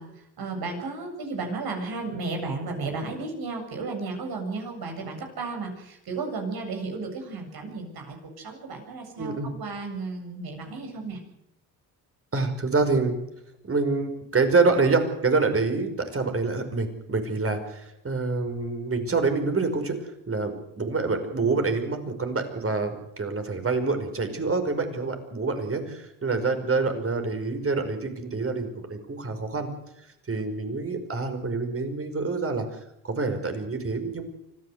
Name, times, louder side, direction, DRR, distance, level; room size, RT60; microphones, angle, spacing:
voice 1, 0.0-11.2, right 3 dB, 60° right, 4 dB, 7.7 m, -34 dB
voice 2, 9.2-9.5 12.3-13.2 13.6-29.7 30.0-32.7 33.0-34.2, right 3 dB, 35° right, 7 dB, 5.5 m, -26 dB
25.0 x 15.5 x 8.2 m, 0.82 s
supercardioid pair, 70°, 41 cm